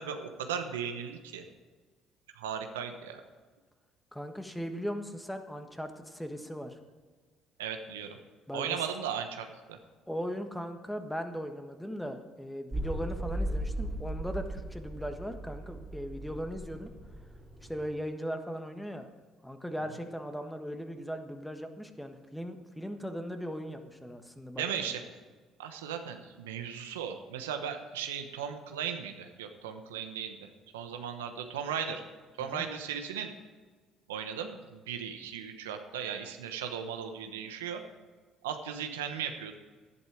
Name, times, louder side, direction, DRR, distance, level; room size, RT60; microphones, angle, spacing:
voice 1, 0.0-1.4 2.4-3.2 7.6-8.2 8.5-9.8 24.6-25.0 25.6-30.4 30.7-32.0 32.4-33.3 34.1-37.8 38.4-39.6, right 8 dB, 90° right, 6 dB, 1.0 m, -36 dB
voice 2, 4.1-6.8 8.5-8.9 10.1-16.9 17.6-19.1 19.4-24.9 32.4-32.7, equal, 5° left, 6 dB, 1.5 m, -38 dB
sound 1, 12.7-17.9, right 1 dB, 20° right, 2.6 m, -37 dB
11.0 x 11.0 x 4.9 m, 1.4 s
hypercardioid pair, 60°, 0 cm